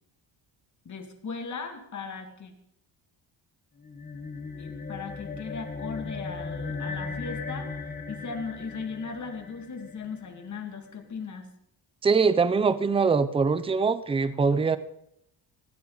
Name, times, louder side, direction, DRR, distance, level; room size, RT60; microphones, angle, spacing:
voice 1, 0.8-2.5 4.6-7.7 8.1-11.5, left 5 dB, 35° left, 5 dB, 2.3 m, -37 dB
sound 1, 3.8-10.5, left 4 dB, 20° left, 1.2 m, -37 dB
voice 2, 12.0-14.8, right 5 dB, 10° right, 13 dB, 0.5 m, -23 dB
18.5 x 18.5 x 4.0 m, 0.74 s
cardioid pair, 175°, 47 cm